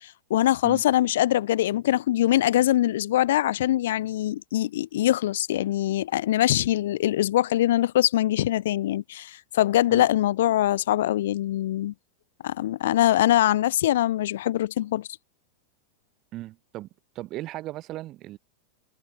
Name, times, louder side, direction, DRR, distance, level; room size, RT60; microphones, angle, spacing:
voice 1, 0.0-11.9 12.4-15.1, left 13 dB, 55° left, 2.9 m, -23 dB
voice 2, 16.3-16.9 17.2-18.4, right 16 dB, 35° right, 5.3 m, -37 dB
figure-of-eight pair, 90°, 0 cm